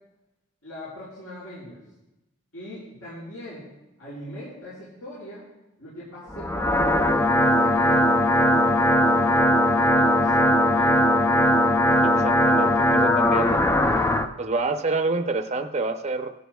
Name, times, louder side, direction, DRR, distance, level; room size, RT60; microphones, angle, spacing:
voice 1, 0.6-1.8 2.5-3.7 4.0-5.4 5.8-6.8 7.1-9.6 9.8-11.2, left 1 dB, 85° left, -11 dB, 4.7 m, -40 dB
sound 1, 6.3-14.3, left 1 dB, 10° left, 0.4 m, -19 dB
voice 2, 12.0-13.6 14.4-16.3, right 3 dB, 30° right, 6 dB, 0.6 m, -27 dB
17.0 x 12.5 x 2.3 m, 0.97 s
head